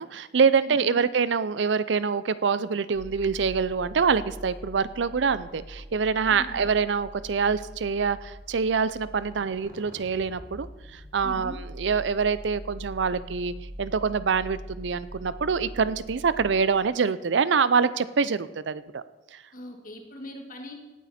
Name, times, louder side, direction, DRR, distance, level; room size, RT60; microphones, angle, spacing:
voice 1, 0.0-19.0, right 5 dB, 70° right, 16 dB, 0.5 m, -25 dB
voice 2, 0.7-1.1 6.3-6.7 11.2-11.6 19.5-20.7, left 1 dB, 50° left, 3 dB, 1.9 m, -40 dB
sound 1, 2.9-16.6, equal, 55° right, 1.8 m, -43 dB
17.5 x 9.2 x 4.3 m, 1.2 s
head